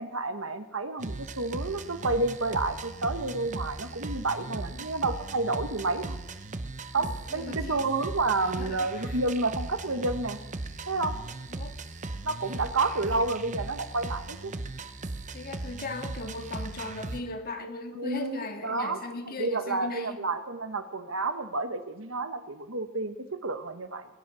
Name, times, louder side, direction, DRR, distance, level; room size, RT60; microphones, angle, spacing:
voice 1, 0.0-6.2 6.9-10.4 10.9-11.2 12.2-14.5 17.9-19.0 19.4-24.1, right 3 dB, 75° right, 9 dB, 1.3 m, -30 dB
sound 1, 1.0-17.2, right 2 dB, 35° right, 0.8 m, -38 dB
voice 2, 7.0-7.8 8.6-9.2 11.5-11.7 15.3-20.2, left 2 dB, 45° left, 5 dB, 1.8 m, -38 dB
20.0 x 10.5 x 6.3 m, 0.96 s
head